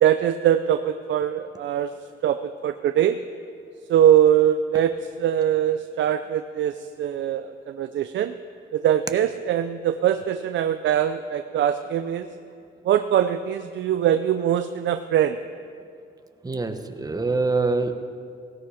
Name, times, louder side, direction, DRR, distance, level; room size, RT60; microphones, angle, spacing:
voice 1, 0.0-1.9 2.2-3.2 3.9-8.3 8.7-12.3 12.8-15.4, right 10 dB, 70° right, 9 dB, 0.6 m, -22 dB
voice 2, 16.4-18.0, right 3 dB, 20° right, 7 dB, 1.3 m, -25 dB
17.0 x 16.0 x 5.0 m, 2.3 s
cardioid pair, 90°, 20 cm